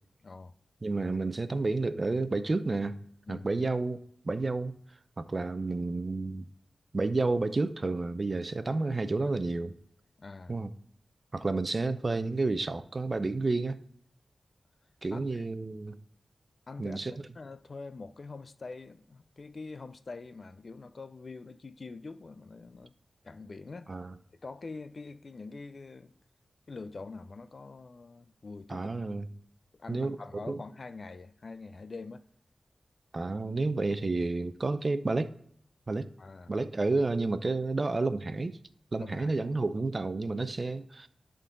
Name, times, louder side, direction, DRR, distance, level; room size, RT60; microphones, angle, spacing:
voice 1, 0.2-0.5 3.3-3.5 10.2-10.5 15.1-15.5 16.7-22.9 23.2-23.9 24.4-26.1 26.7-29.2 29.7-32.2 36.2-36.5 39.0-39.5, left 3 dB, 55° left, 0.5 m, -45 dB
voice 2, 0.8-3.0 3.3-4.7 5.2-6.5 6.9-9.7 10.5-10.7 11.3-13.8 15.0-16.0 16.8-17.1 23.9-24.1 28.7-29.3 29.9-30.6 33.1-35.3 35.9-36.1 36.5-38.6 38.9-41.1, right 3 dB, 45° right, 0.5 m, -30 dB
10.5 x 3.9 x 3.8 m
cardioid pair, 60°, 0 cm